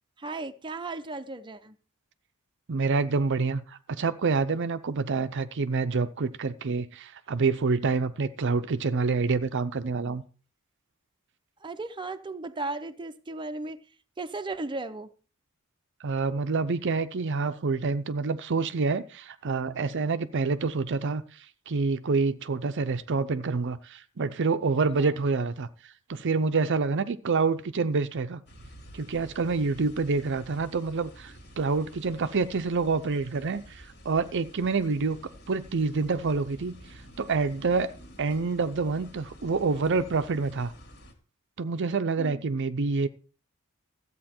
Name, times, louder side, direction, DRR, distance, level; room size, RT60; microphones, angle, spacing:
voice 1, 0.2-1.8 11.6-13.8 14.2-15.1 25.0-25.2 42.2-42.4, right 2 dB, 20° right, 0.7 m, -36 dB
voice 2, 2.7-10.2 16.0-21.2 21.7-25.7 26.1-28.4 28.9-35.2 35.5-37.9 38.2-40.7 41.6-43.1, right 4 dB, 60° right, 0.6 m, -27 dB
sound 1, 28.5-41.1, equal, 50° left, 2.4 m, -50 dB
13.5 x 8.5 x 4.4 m
head